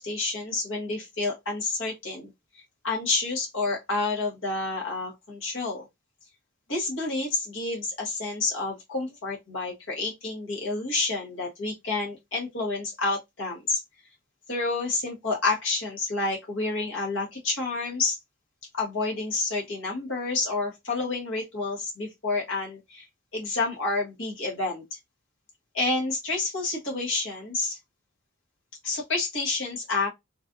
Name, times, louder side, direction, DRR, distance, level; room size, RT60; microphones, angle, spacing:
voice 1, 0.0-5.9 6.7-13.8 14.5-18.2 18.7-23.1 23.3-25.0 25.7-27.8 28.8-30.1, left 3 dB, 65° left, 1.1 m, -29 dB
3.2 x 2.4 x 2.5 m
head